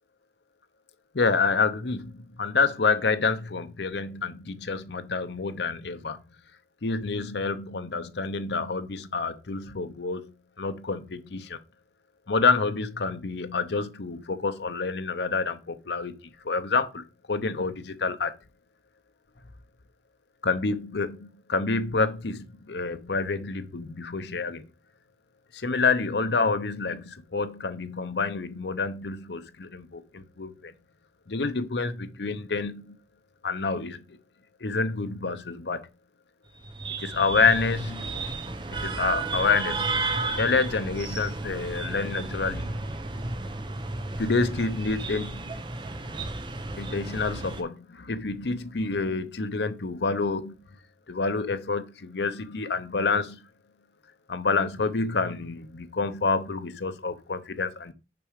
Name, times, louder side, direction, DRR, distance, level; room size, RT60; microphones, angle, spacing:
voice 1, 1.1-6.2 6.8-10.3 10.6-11.6 12.3-16.1 16.4-17.0 17.3-18.3 20.4-24.7 25.5-30.7 31.3-33.0 33.4-34.0 34.6-35.8 37.0-38.1 38.7-39.9 40.4-42.7 44.2-45.5 46.8-50.5 51.1-53.4 54.3-57.9, left 4 dB, 75° left, 0.8 m, -28 dB
sound 1, 36.6-47.6, right 3 dB, 25° right, 0.7 m, -33 dB
5.9 x 4.9 x 5.0 m
head